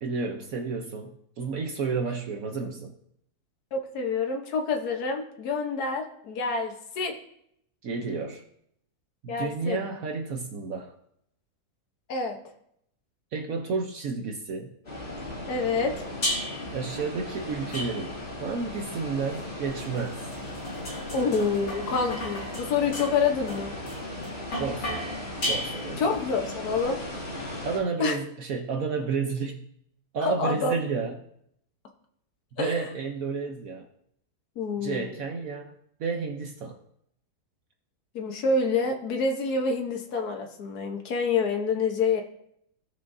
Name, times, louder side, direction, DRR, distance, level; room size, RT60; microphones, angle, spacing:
voice 1, 0.0-2.9 7.8-8.4 9.2-10.9 13.3-14.7 16.7-18.1 18.4-20.2 24.5-26.1 27.6-29.6 30.1-31.2 32.6-33.9 34.8-35.7 36.0-36.8, right 4 dB, 65° right, 3 dB, 1.2 m, -31 dB
voice 2, 3.7-7.2 9.3-9.8 12.1-12.4 15.5-16.0 21.1-23.7 26.0-27.0 28.0-28.2 30.2-30.7 32.6-32.7 34.6-35.1 38.1-42.2, left 4 dB, 70° left, 2 dB, 1.6 m, -27 dB
sound 1, 14.8-27.8, left 1 dB, 30° left, 3.1 m, -37 dB
sound 2, 16.2-16.8 17.7-18.4 19.4-26.2, left 1 dB, 55° left, 2.6 m, -35 dB
17.0 x 6.3 x 2.7 m, 0.73 s
omnidirectional pair, 1.7 m